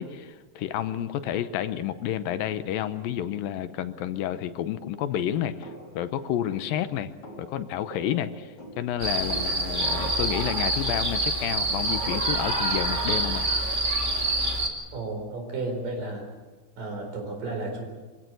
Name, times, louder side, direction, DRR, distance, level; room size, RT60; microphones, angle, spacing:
voice 1, 0.0-7.1 7.4-13.5, left 11 dB, 80° left, 11 dB, 2.6 m, -30 dB
sound 1, 5.6-11.4, equal, 35° left, 4.7 m, -46 dB
sound 2, 9.0-14.7, right 2 dB, 20° right, 1.6 m, -26 dB
voice 2, 14.9-16.2 16.8-17.9, right 2 dB, 65° right, 3 dB, 6.0 m, -33 dB
25.0 x 16.5 x 7.9 m, 1.3 s
omnidirectional pair, 4.2 m